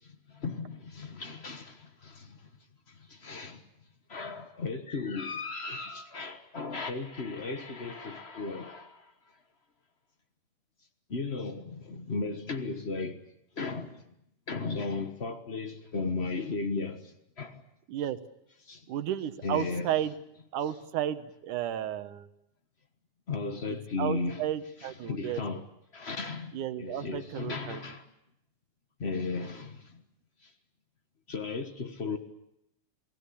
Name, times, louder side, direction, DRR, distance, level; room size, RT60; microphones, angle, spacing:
voice 1, 0.0-2.4 2.9-3.6 4.1-9.1 11.1-13.2 13.6-14.0 14.5-17.6 18.6-18.8 19.4-19.9 23.3-24.4 24.8-25.7 25.9-28.1 29.0-30.0 30.4-30.5 31.3-32.2, left 4 dB, 90° left, 0.5 m, -35 dB
voice 2, 18.9-20.1 20.5-22.3 24.0-25.4 26.5-27.8, right 11 dB, 85° right, 2.7 m, -33 dB
29.0 x 19.0 x 8.5 m
omnidirectional pair, 3.5 m